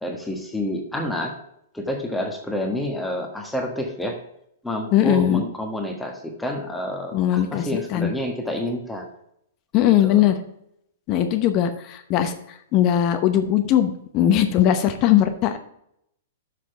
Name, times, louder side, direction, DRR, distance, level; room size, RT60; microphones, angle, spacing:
voice 1, 0.0-1.3 1.7-4.2 4.6-9.1 9.8-10.3, left 1 dB, 5° left, 1 dB, 1.3 m, -29 dB
voice 2, 4.9-5.4 7.1-8.1 9.7-10.4 11.1-12.3 12.7-15.6, left 11 dB, 35° left, 7 dB, 0.8 m, -19 dB
6.8 x 6.0 x 5.6 m, 0.74 s
hypercardioid pair, 145°, 0 cm